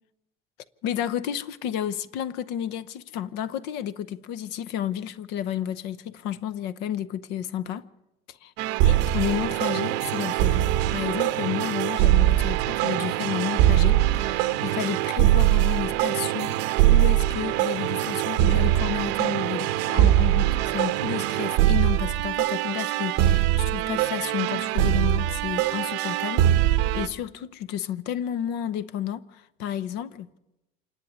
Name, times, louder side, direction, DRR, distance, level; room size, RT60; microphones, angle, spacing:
voice 1, 0.8-7.9 8.8-10.6 10.9-16.6 16.9-26.5 26.9-30.3, left 10 dB, 55° left, 0.8 m, -31 dB
sound 1, 8.6-27.1, right 13 dB, 55° right, 0.9 m, -22 dB
26.5 x 11.0 x 9.6 m
cardioid pair, 175°, 21 cm